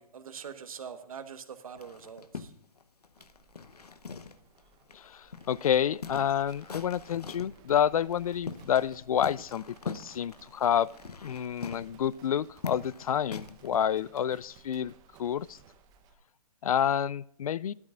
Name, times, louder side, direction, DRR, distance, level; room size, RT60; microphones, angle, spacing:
voice 1, 0.0-2.5, right 7 dB, 65° right, 9 dB, 1.3 m, -43 dB
sound 1, 1.8-4.6 4.9-5.0 5.3-7.6 8.1-8.9 9.2-13.7, left 5 dB, 90° left, 1.0 m, -42 dB
Livestock farm animals working animals, 3.2-16.2, right 7 dB, 20° right, 0.9 m, -58 dB
voice 2, 4.9-10.9 11.2-14.9 15.2-15.6 16.6-17.7, left 9 dB, 65° left, 22 dB, 0.4 m, -29 dB
14.5 x 12.5 x 2.5 m, 0.69 s
hypercardioid pair, 140°, 19 cm